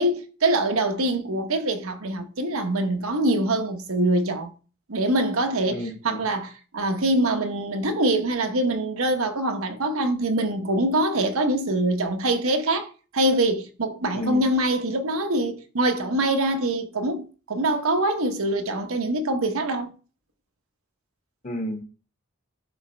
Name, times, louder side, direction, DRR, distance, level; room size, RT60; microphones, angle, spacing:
voice 1, 0.0-4.5 4.9-19.9, right 1 dB, 80° right, 1.0 m, -24 dB
voice 2, 5.7-6.3 14.1-14.4 21.4-21.8, equal, 35° left, 1.3 m, -31 dB
11.5 x 4.2 x 3.3 m
head